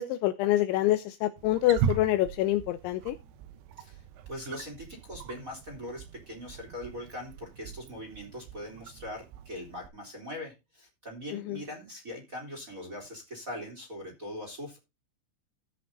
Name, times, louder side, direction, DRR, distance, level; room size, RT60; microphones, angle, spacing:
voice 1, 0.0-3.2 11.3-11.6, left 14 dB, 80° left, 12 dB, 2.8 m, -26 dB
Wild animals, 1.4-9.9, right 8 dB, 75° right, 3.3 m, -39 dB
voice 2, 3.8-14.8, left 1 dB, 20° right, 2 dB, 2.7 m, -41 dB
16.0 x 5.8 x 3.9 m, 0.25 s
omnidirectional pair, 5.8 m